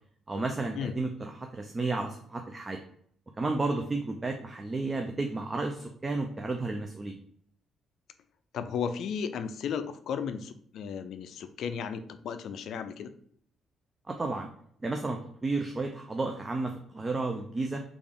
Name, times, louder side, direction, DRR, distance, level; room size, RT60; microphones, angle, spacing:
voice 1, 0.3-2.8 3.4-7.1 14.1-14.5 14.8-17.8, right 3 dB, 25° right, 3 dB, 0.4 m, -32 dB
voice 2, 8.5-13.1, left 7 dB, 70° left, 10 dB, 0.3 m, -34 dB
3.3 x 2.4 x 3.5 m, 0.64 s
cardioid pair, 90°, 0 cm